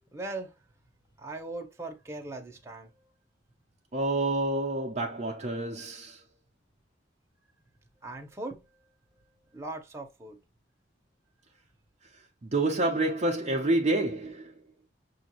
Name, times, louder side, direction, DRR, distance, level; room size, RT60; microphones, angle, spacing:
voice 1, 0.1-0.5 1.2-2.9 8.0-8.6 9.5-10.4, right 2 dB, 15° right, 0.9 m, -39 dB
voice 2, 3.9-6.2 12.4-14.6, right 2 dB, 35° right, 0.6 m, -28 dB
6.3 x 2.5 x 3.0 m
head